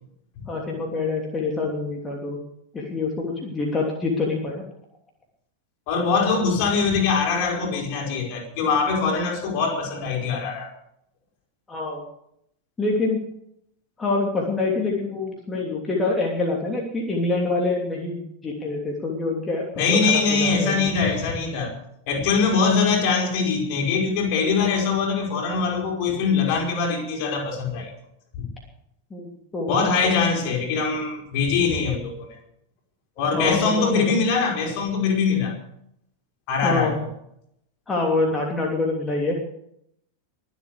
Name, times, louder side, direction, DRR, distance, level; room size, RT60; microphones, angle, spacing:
voice 1, 0.5-2.4 2.7-4.6 11.7-12.0 12.8-13.3 14.0-20.9 29.1-29.8 30.0-30.1 33.3-34.1 36.6-37.0 37.9-39.3, left 3 dB, 15° left, -2 dB, 3.0 m, -26 dB
voice 2, 5.9-10.7 19.7-21.7 22.1-27.9 28.4-28.5 29.7-32.3 33.2-35.5 36.5-37.1, left 5 dB, 45° left, 1 dB, 5.0 m, -22 dB
23.0 x 8.3 x 6.7 m, 0.74 s
figure-of-eight pair, 90°, 0 cm